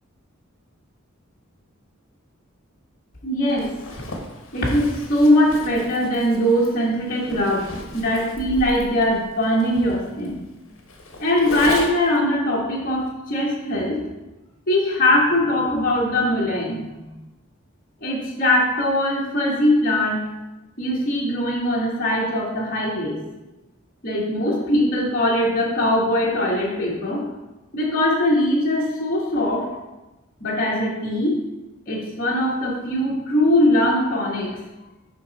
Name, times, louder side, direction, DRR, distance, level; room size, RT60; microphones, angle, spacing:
voice 1, 3.2-3.7 4.5-10.4 11.2-14.0 14.7-17.1 18.0-20.2 20.8-23.2 24.0-27.2 27.7-29.7 30.4-31.4 31.8-34.6, left 1 dB, 40° left, -6 dB, 1.5 m, -21 dB
Zipper (clothing), 3.5-12.2, left 2 dB, 65° left, 1.3 m, -36 dB
11.0 x 3.9 x 4.1 m, 1.1 s
head